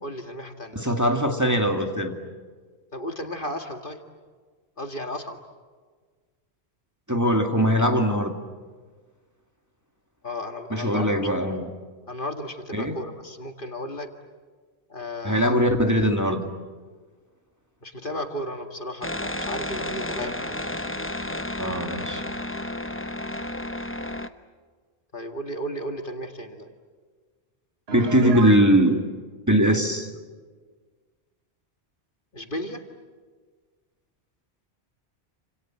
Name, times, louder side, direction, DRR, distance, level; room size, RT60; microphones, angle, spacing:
voice 1, 0.0-0.8 2.9-4.0 4.8-5.4 10.2-11.3 12.1-14.1 14.9-15.6 17.8-20.6 25.1-26.7 32.3-32.8, left 1 dB, 55° left, 5 dB, 2.2 m, -34 dB
voice 2, 0.7-2.2 7.1-8.3 10.7-11.7 12.7-12.9 15.2-16.5 21.6-22.3 27.9-29.0 29.5-30.1, equal, 15° right, 3 dB, 2.3 m, -21 dB
sound 1, 19.0-24.3, left 1 dB, 15° left, 0.9 m, -32 dB
Piano, 27.9-28.7, right 5 dB, 70° right, 1.7 m, -32 dB
29.0 x 27.0 x 7.5 m, 1.5 s
omnidirectional pair, 1.1 m